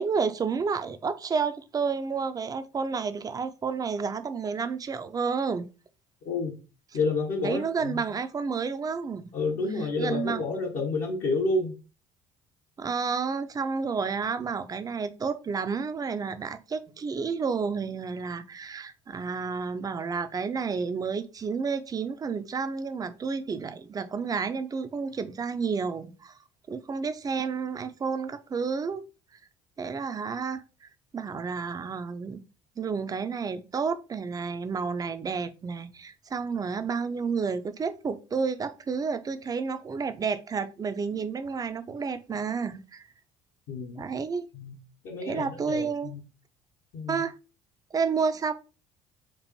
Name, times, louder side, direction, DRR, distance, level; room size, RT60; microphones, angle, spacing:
voice 1, 0.0-5.7 7.4-9.3 9.7-10.5 12.8-26.3 26.7-29.0 29.8-32.4 32.8-43.0 44.0-44.5 45.2-46.1 47.1-47.3 47.9-48.5, right 5 dB, 25° right, 0.4 m, -30 dB
voice 2, 6.2-6.6 6.9-8.0 9.3-11.7 43.7-44.1 44.5-44.8 45.0-46.2 46.9-47.2, left 3 dB, 55° left, 0.9 m, -29 dB
4.4 x 2.5 x 3.0 m
figure-of-eight pair, 55°, 16 cm